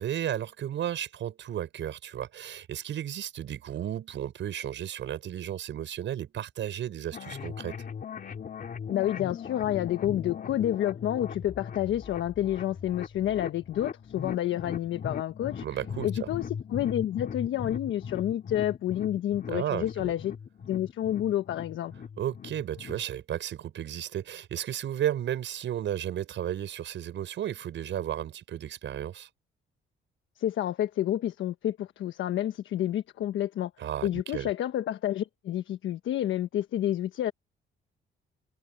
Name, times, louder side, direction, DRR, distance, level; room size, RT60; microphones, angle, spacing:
voice 1, 0.0-7.8 15.6-16.3 19.5-20.1 22.2-29.3 33.8-34.5, right 11 dB, 70° right, 6.3 m, -33 dB
sound 1, 7.1-23.0, left 7 dB, 45° left, 3.2 m, -39 dB
voice 2, 8.9-15.6 16.0-20.3 20.7-21.9 30.4-33.7 34.0-37.3, left 12 dB, 75° left, 1.2 m, -29 dB
cardioid pair, 90°, 20 cm